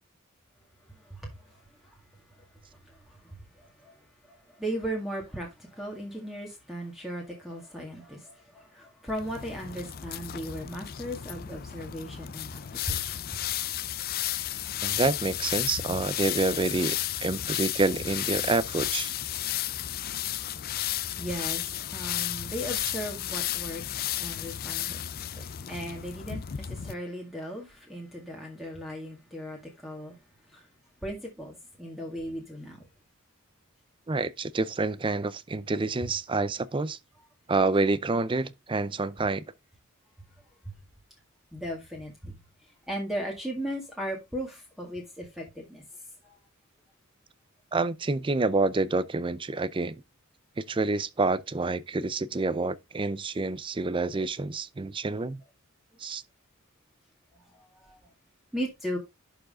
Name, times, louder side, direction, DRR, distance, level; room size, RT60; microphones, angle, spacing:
voice 1, 0.9-2.0 2.3-2.4 2.8-4.0 4.2-13.5 21.2-25.0 25.3-30.2 30.5-30.7 31.0-32.9 40.7-40.8 41.5-42.4 42.9-45.8 46.2-46.4 57.5-58.1 58.5-59.0, equal, ahead, 2.0 m, -37 dB
sound 1, 9.1-26.9, left 12 dB, 45° left, 0.4 m, -33 dB
voice 2, 14.8-19.1 34.1-37.0 37.5-39.4 47.7-50.0 50.6-55.4 56.0-56.2, right 3 dB, 25° right, 0.5 m, -28 dB
11.0 x 4.8 x 3.6 m
head